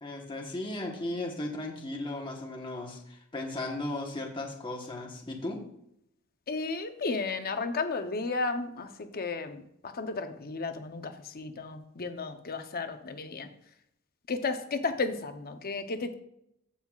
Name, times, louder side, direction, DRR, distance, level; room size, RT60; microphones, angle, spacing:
voice 1, 0.0-5.7, left 2 dB, 25° left, 0 dB, 1.2 m, -36 dB
voice 2, 6.5-9.6 9.9-13.5 14.3-16.1, left 3 dB, 45° left, 7 dB, 0.8 m, -33 dB
14.5 x 5.6 x 2.4 m, 0.75 s
head